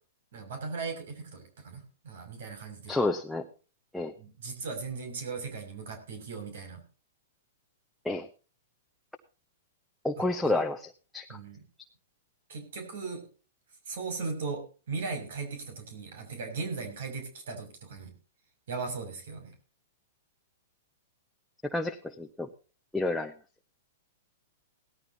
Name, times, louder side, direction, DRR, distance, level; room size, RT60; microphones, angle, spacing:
voice 1, 0.3-3.0 4.2-6.8 10.2-10.6 11.3-11.6 12.5-13.2 13.9-18.1 18.7-19.5, right 4 dB, 70° right, 6 dB, 6.4 m, -38 dB
voice 2, 2.9-3.4 3.9-4.1 8.0-8.3 10.0-11.3 21.7-22.5 22.9-23.3, left 2 dB, 5° left, 2 dB, 1.0 m, -30 dB
18.0 x 14.0 x 2.8 m, 0.35 s
hypercardioid pair, 140°, 0 cm